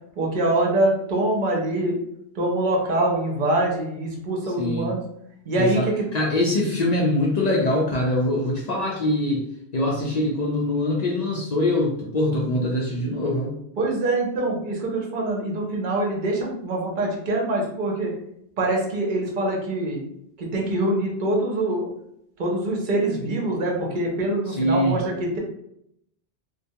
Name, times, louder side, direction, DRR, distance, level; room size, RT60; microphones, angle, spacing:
voice 1, 0.2-2.0 2.4-5.0 5.5-6.1 13.8-18.1 18.6-20.0 20.4-21.9 22.4-25.4, right 1 dB, 50° right, -1 dB, 0.8 m, -24 dB
voice 2, 4.6-4.9 5.5-9.5 9.7-13.6 24.5-25.0, left 1 dB, 55° left, -2 dB, 0.4 m, -23 dB
2.2 x 2.1 x 2.7 m, 0.74 s
omnidirectional pair, 1.1 m